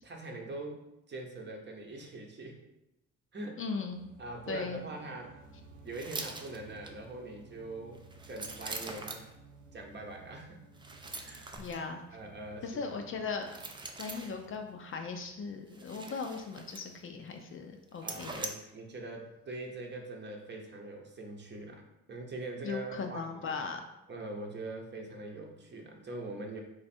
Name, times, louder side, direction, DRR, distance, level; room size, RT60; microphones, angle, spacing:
voice 1, 0.0-2.6 3.3-3.6 4.2-5.3 5.8-9.2 9.7-10.6 11.2-11.7 12.1-13.0 18.0-21.8 22.1-23.5 24.1-26.6, right 2 dB, 35° right, 1 dB, 0.8 m, -43 dB
voice 2, 3.6-4.0 4.5-4.8 11.6-12.0 12.6-13.6 14.0-18.4 22.6-23.8, left 4 dB, 45° left, 4 dB, 0.5 m, -38 dB
sound 1, 3.9-19.8, right 3 dB, 80° right, 0.9 m, -57 dB
sound 2, 5.9-6.9 7.9-9.3 10.7-11.8 13.4-14.5 15.7-17.1 17.4-17.5 17.9-18.5, right 3 dB, 15° right, 0.4 m, -43 dB
3.3 x 2.3 x 4.2 m, 0.89 s
cardioid pair, 90°, 30 cm